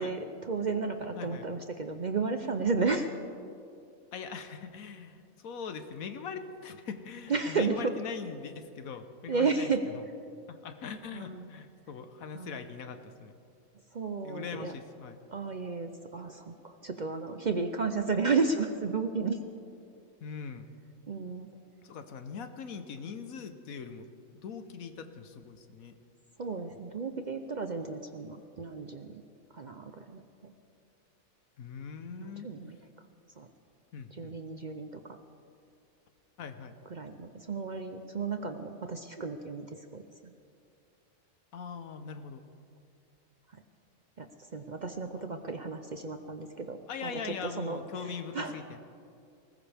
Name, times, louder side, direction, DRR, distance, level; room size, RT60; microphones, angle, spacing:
voice 1, 0.0-3.1 7.3-7.9 9.3-9.8 11.1-11.5 12.3-12.6 13.9-14.8 15.3-19.4 21.1-21.5 22.3-22.4 26.4-29.2 29.5-30.5 32.2-32.8 33.4-33.5 34.1-35.2 36.9-40.3 43.5-43.6 44.2-48.5, right 4 dB, 45° right, 7 dB, 0.6 m, -33 dB
voice 2, 1.2-1.5 4.1-9.7 10.5-13.3 14.2-15.2 20.2-20.7 21.8-24.1 24.4-26.0 31.6-32.5 33.9-34.4 36.4-36.7 41.5-42.4 45.2-45.4 46.9-48.8, left 6 dB, 85° left, 9 dB, 1.4 m, -41 dB
20.0 x 19.0 x 3.5 m, 2.4 s
omnidirectional pair, 1.4 m